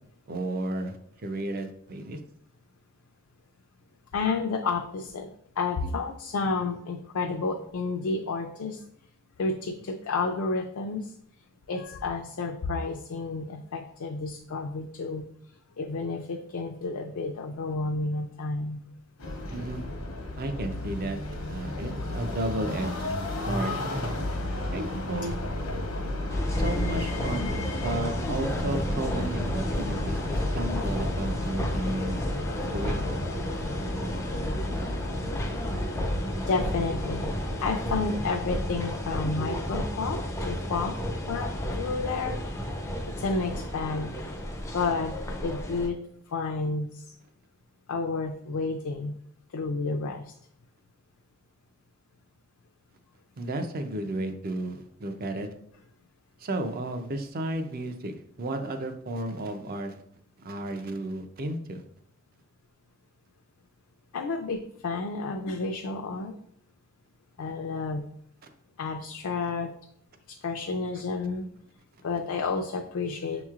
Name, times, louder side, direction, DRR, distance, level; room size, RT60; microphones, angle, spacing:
voice 1, 0.3-1.0 1.2-2.2 19.5-19.8 20.4-21.2 21.5-23.2 23.4-23.8 24.7-25.3 26.5-32.3 32.6-33.0 53.4-55.5 56.4-60.0 60.4-61.8, right 1 dB, 45° right, 6 dB, 0.5 m, -33 dB
voice 2, 4.1-5.3 5.6-8.8 9.4-11.1 11.7-15.3 15.8-18.8 36.5-37.2 37.6-41.0 41.3-42.4 43.2-44.1 44.7-45.2 45.4-46.0 46.3-47.1 47.9-49.1 49.5-50.3 64.1-66.3 67.4-68.0 68.8-69.7 70.3-71.5 72.0-73.4, left 4 dB, 75° left, 3 dB, 0.4 m, -30 dB
sound 1, 19.2-38.2, left 1 dB, 90° left, 0.9 m, -33 dB
sound 2, 26.3-45.9, equal, 15° left, 0.4 m, -32 dB
6.3 x 3.0 x 2.4 m, 0.68 s
head